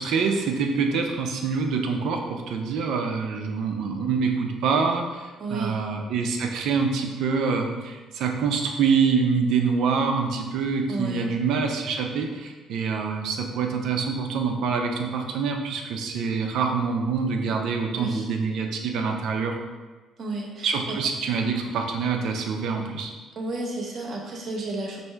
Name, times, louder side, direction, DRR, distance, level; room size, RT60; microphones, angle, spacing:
voice 1, 0.0-19.6 20.6-23.1, right 5 dB, 75° right, 3 dB, 0.5 m, -25 dB
voice 2, 5.4-5.8 10.9-11.2 17.9-18.3 20.2-21.0 23.4-25.0, right 2 dB, 55° right, -1 dB, 0.9 m, -32 dB
4.4 x 2.6 x 3.3 m, 1.3 s
supercardioid pair, 75°, 0 cm